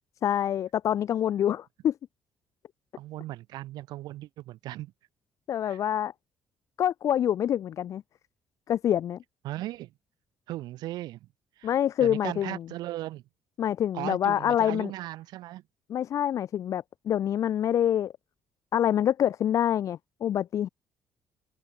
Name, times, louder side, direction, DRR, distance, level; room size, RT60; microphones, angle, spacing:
voice 1, 0.2-1.9 5.5-6.1 6.8-8.0 8.7-9.2 11.6-12.6 13.6-14.9 15.9-18.1 18.7-20.7, left 10 dB, 50° left, 1.3 m, -26 dB
voice 2, 3.0-4.9 5.7-5.8 9.4-9.9 10.5-11.3 11.6-13.2 13.9-15.6, right 16 dB, 85° right, 4.3 m, -37 dB
cardioid pair, 150°, 7 cm